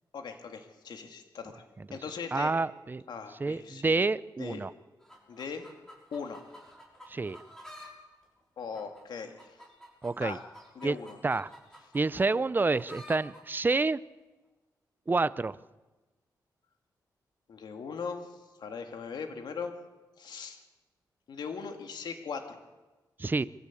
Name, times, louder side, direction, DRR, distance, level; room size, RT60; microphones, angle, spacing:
voice 1, 0.1-1.6 1.9-2.5 3.1-4.0 4.4-4.6 5.3-5.7 6.1-6.4 8.6-9.6 10.2-10.4 10.8-11.2 17.5-19.7 20.2-20.6 21.3-22.6, left 5 dB, 75° left, 5 dB, 2.2 m, -39 dB
voice 2, 2.3-3.0 3.4-4.7 7.1-7.4 10.0-10.4 10.8-11.0 11.2-11.5 11.9-14.0 15.1-15.6 23.2-23.5, right 3 dB, 25° right, 16 dB, 0.7 m, -28 dB
sound 1, 5.0-7.9 8.2-13.4 14.2-14.3, equal, 5° left, 6.3 m, -51 dB
23.0 x 15.0 x 8.5 m, 1.2 s
cardioid pair, 85°, 7 cm